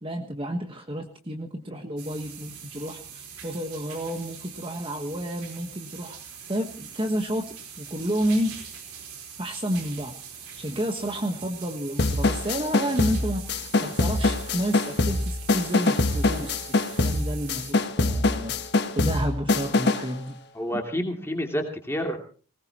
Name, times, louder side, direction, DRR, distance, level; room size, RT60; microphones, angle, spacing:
voice 1, 0.0-6.2 6.5-8.5 9.4-16.6 17.0-18.5 18.9-20.4, equal, 25° right, 4 dB, 1.3 m, -30 dB
sound 1, 2.0-17.7, right 7 dB, 85° right, 4.4 m, -43 dB
sound 2, 12.0-20.1, left 2 dB, 50° left, 1.3 m, -24 dB
voice 2, 20.5-22.2, equal, 10° left, 2 dB, 2.7 m, -29 dB
20.0 x 19.5 x 3.0 m, 0.39 s
head